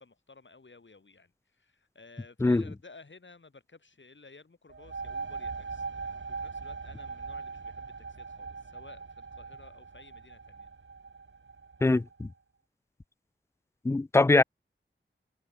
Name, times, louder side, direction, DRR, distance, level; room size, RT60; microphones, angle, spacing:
voice 1, 0.0-10.7, left 3 dB, 70° left, 5.6 m, -55 dB
sound 1, 4.7-12.1, right 4 dB, 70° right, 2.1 m, -40 dB
voice 2, 11.8-12.3 13.8-14.4, left 2 dB, 15° left, 0.3 m, -22 dB
wide cardioid pair, 50°, 20 cm